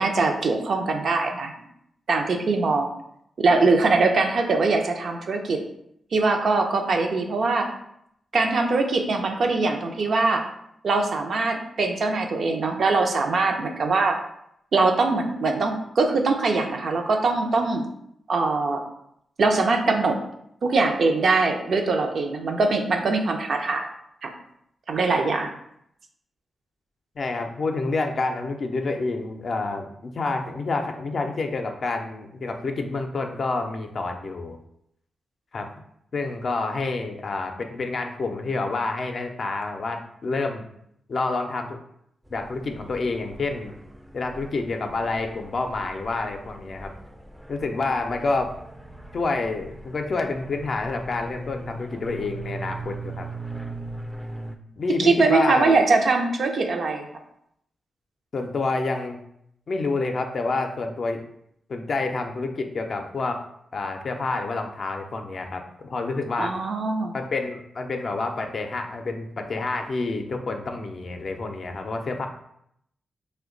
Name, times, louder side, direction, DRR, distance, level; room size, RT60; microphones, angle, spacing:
voice 1, 0.0-1.5 2.1-2.9 3.4-5.6 6.1-7.7 8.3-10.4 10.8-14.2 14.7-17.8 18.3-18.8 19.4-20.2 20.6-23.9 24.2-24.3 24.9-25.5 55.0-57.1 66.4-67.1, right 3 dB, 70° right, 4 dB, 0.5 m, -22 dB
voice 2, 27.2-34.6 35.5-35.7 36.1-40.6 41.1-41.8 42.3-43.7 44.1-46.9 47.5-48.6 49.1-53.3 54.8-55.8 58.3-59.2 59.7-61.2 61.7-63.5 63.7-66.6 67.1-72.3, left 3 dB, 60° left, 4 dB, 0.4 m, -28 dB
sound 1, 42.3-54.6, right 2 dB, 5° right, 0.4 m, -40 dB
2.8 x 2.1 x 3.7 m, 0.74 s
cardioid pair, 50°, 0 cm